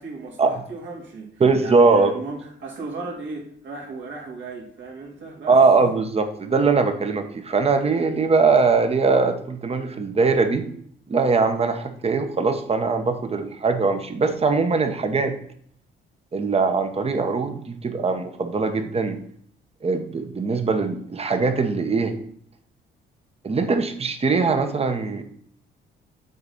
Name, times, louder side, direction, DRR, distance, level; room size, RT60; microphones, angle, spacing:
voice 1, 0.0-5.6, right 3 dB, 70° right, -2 dB, 2.7 m, -36 dB
voice 2, 1.4-2.1 5.5-10.6 11.1-15.4 16.3-19.2 19.8-22.1 23.4-25.2, right 4 dB, 30° right, 7 dB, 1.0 m, -21 dB
6.6 x 4.0 x 5.7 m, 0.62 s
cardioid pair, 90°, 20 cm